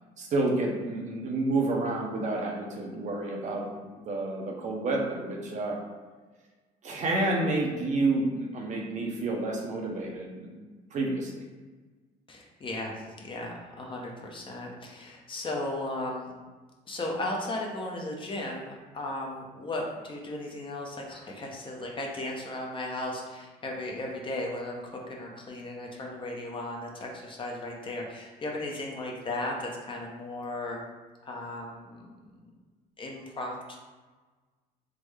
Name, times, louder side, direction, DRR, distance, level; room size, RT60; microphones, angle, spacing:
voice 1, 0.2-5.8 6.8-10.6 10.9-11.4, right 2 dB, 45° right, -1 dB, 0.7 m, -29 dB
voice 2, 12.3-12.9 13.2-16.4 16.9-30.8 31.2-32.3 33.0-33.8, left 2 dB, 30° left, -1 dB, 0.6 m, -36 dB
3.6 x 2.1 x 3.2 m, 1.3 s
cardioid pair, 110°, 17 cm